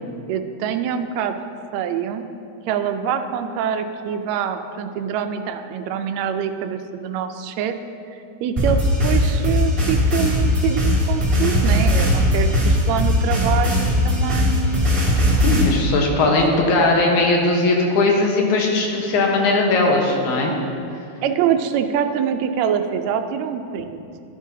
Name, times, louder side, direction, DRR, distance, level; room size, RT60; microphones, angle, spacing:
voice 1, 0.3-1.3 1.7-2.3 2.7-7.8 8.4-14.9 16.3-16.7 21.2-24.2, right 8 dB, 80° right, 7 dB, 1.7 m, -25 dB
sound 1, 8.6-15.6, left 1 dB, 25° right, 1.3 m, -18 dB
voice 2, 15.4-20.5, left 2 dB, 75° left, 0 dB, 2.5 m, -18 dB
12.0 x 10.0 x 2.7 m, 2.6 s
omnidirectional pair, 3.4 m